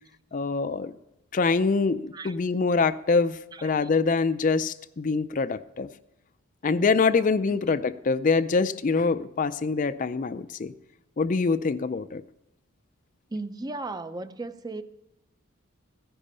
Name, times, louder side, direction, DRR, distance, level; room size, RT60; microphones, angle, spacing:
voice 1, 0.3-0.9 1.3-5.9 6.6-10.7 11.2-12.2, left 4 dB, 35° left, 0.4 m, -25 dB
voice 2, 3.5-3.9 7.5-7.6 13.3-14.8, right 2 dB, 20° right, 0.5 m, -36 dB
15.5 x 10.0 x 5.5 m
head